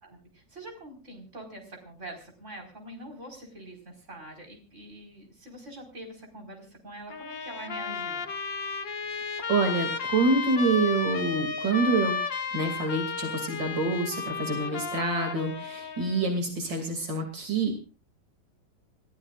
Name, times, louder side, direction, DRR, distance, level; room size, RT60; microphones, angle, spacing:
voice 1, 0.0-8.2, right 1 dB, 40° right, 2 dB, 5.1 m, -44 dB
Trumpet, 7.1-16.3, left 5 dB, 80° left, 2.8 m, -33 dB
voice 2, 9.5-12.1 12.5-17.9, right 3 dB, 75° right, 3 dB, 3.4 m, -27 dB
28.5 x 15.0 x 2.5 m, 0.33 s
omnidirectional pair, 1.9 m